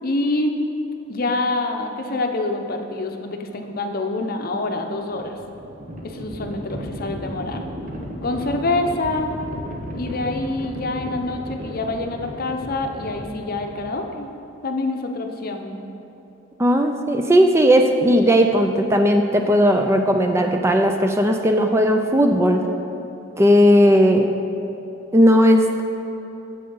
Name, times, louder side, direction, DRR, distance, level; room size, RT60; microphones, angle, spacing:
voice 1, 0.0-0.6 1.1-5.4 6.0-7.7 8.2-9.3 9.9-14.3 14.6-15.8, left 2 dB, 45° left, 4 dB, 0.7 m, -26 dB
Livestock farm animals working animals, 5.1-14.1, equal, 40° right, 1.1 m, -34 dB
voice 2, 16.6-22.6 23.4-24.3 25.1-25.8, equal, 15° right, 4 dB, 0.4 m, -16 dB
7.8 x 7.4 x 5.4 m, 3.0 s
head